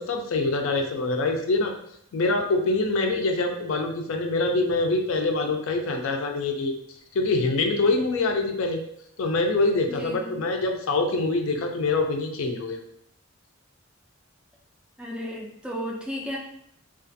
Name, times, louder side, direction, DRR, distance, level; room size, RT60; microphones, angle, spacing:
voice 1, 0.0-1.7 2.1-6.7 7.1-8.8 9.2-12.8, left 3 dB, 70° left, 4 dB, 0.4 m, -25 dB
voice 2, 9.9-10.4 15.0-16.4, equal, 5° right, -1 dB, 0.3 m, -34 dB
2.4 x 2.3 x 2.5 m, 0.71 s
head